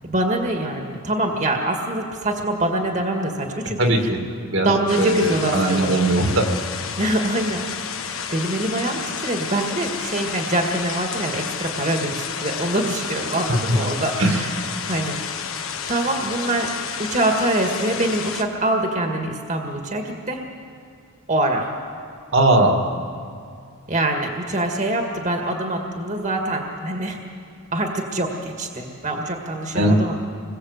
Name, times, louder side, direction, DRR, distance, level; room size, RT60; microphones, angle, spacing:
voice 1, 0.1-4.1 4.6-5.9 6.9-7.6 8.0-14.6 14.9-15.2 15.9-16.7 17.0-20.4 21.3-21.7 23.9-27.2 27.7-30.1, right 1 dB, 35° right, 2 dB, 1.9 m, -24 dB
voice 2, 3.8-4.7 5.0-6.5 14.2-14.4 22.3-22.8 29.7-30.0, right 1 dB, 60° right, 3 dB, 2.3 m, -19 dB
sound 1, 4.9-18.4, left 7 dB, 70° left, 1.4 m, -31 dB
26.5 x 22.0 x 8.1 m, 2.3 s
head